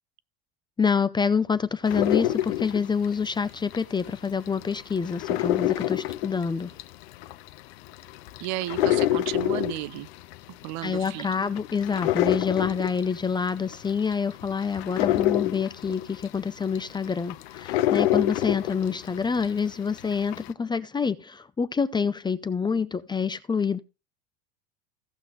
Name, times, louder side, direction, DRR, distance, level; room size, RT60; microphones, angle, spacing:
voice 1, 0.8-6.7 10.8-23.8, left 5 dB, 15° left, 0.5 m, -27 dB
sound 1, 1.9-4.1 4.5-19.6 20.0-20.5, left 14 dB, 85° left, 0.8 m, -27 dB
voice 2, 8.4-10.1 10.6-11.3, right 17 dB, 60° right, 0.5 m, -33 dB
16.5 x 6.0 x 3.2 m
supercardioid pair, 120°, 31 cm